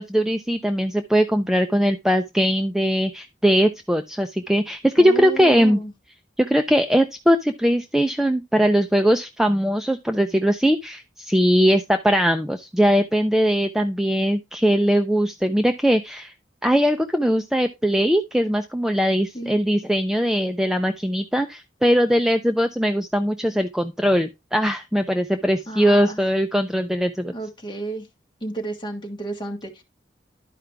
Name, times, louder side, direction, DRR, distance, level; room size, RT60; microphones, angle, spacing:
voice 1, 0.0-5.8 6.4-16.3 16.6-27.3, equal, 5° right, 0.4 m, -20 dB
voice 2, 5.0-5.9 19.3-19.5 25.7-26.2 27.3-28.1 28.4-29.8, right 1 dB, 25° left, 1.5 m, -32 dB
11.5 x 4.8 x 3.4 m
head